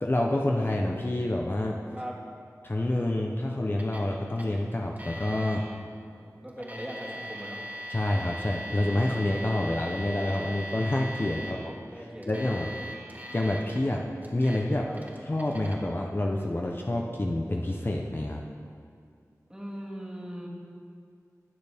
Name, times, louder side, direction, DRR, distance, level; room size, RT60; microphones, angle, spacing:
voice 1, 0.0-1.8 2.6-5.6 7.9-12.7 13.3-14.9 15.3-18.4, left 1 dB, 35° left, 0 dB, 0.7 m, -28 dB
Alarm, 3.8-4.1 4.4-4.5 5.0-5.6 6.5-11.5 12.2-13.8 14.2-14.6 14.9-15.8, equal, 30° right, 1.8 m, -40 dB
voice 2, 6.2-7.6 11.9-12.6 14.8-15.0 19.5-20.5, equal, 10° right, -4 dB, 1.9 m, -40 dB
18.5 x 6.7 x 3.5 m, 2.3 s
wide cardioid pair, 60°, 6 cm